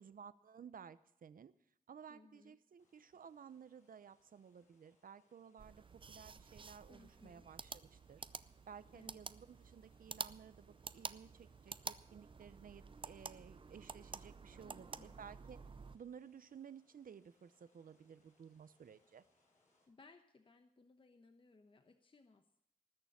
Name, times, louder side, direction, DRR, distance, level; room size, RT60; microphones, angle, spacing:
voice 1, 0.0-1.5 1.9-8.3 8.7-15.6 15.9-19.2, right 7 dB, 75° right, 15 dB, 0.8 m, -56 dB
voice 2, 2.1-2.6 6.9-7.5 8.9-9.2 14.6-15.2 19.9-22.6, left 3 dB, 35° left, 7 dB, 1.0 m, -64 dB
sound 1, 2.8-19.9, left 2 dB, 50° left, 7.1 m, -79 dB
sound 2, 5.6-16.0, right 5 dB, 35° right, 0.5 m, -50 dB
19.5 x 6.8 x 8.5 m, 0.76 s
wide cardioid pair, 135°, 15 cm